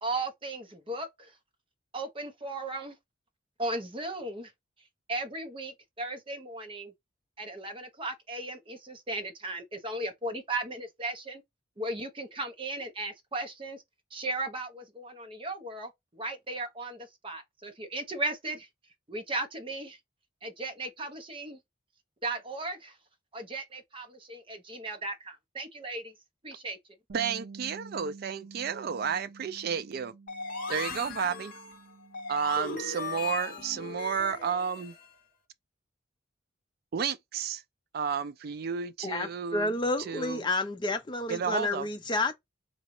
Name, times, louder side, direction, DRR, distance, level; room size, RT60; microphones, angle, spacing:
voice 1, 0.0-1.3 1.9-2.9 3.6-4.5 5.1-6.9 7.4-11.4 11.8-13.8 14.1-18.7 19.1-20.0 20.4-21.6 22.2-22.9 23.3-26.1 26.4-26.8, right 2 dB, 25° right, 0.8 m, -36 dB
voice 2, 27.1-30.1 30.7-31.5 32.3-34.9 36.9-37.6 37.9-40.4 41.3-41.9, right 6 dB, 50° right, 0.3 m, -32 dB
Bass guitar, 27.1-33.3, right 4 dB, 90° right, 0.7 m, -50 dB
sound 1, 30.3-35.2, left 4 dB, 45° left, 0.9 m, -38 dB
voice 3, 39.0-42.3, left 2 dB, 25° left, 0.5 m, -30 dB
3.9 x 2.3 x 3.1 m
head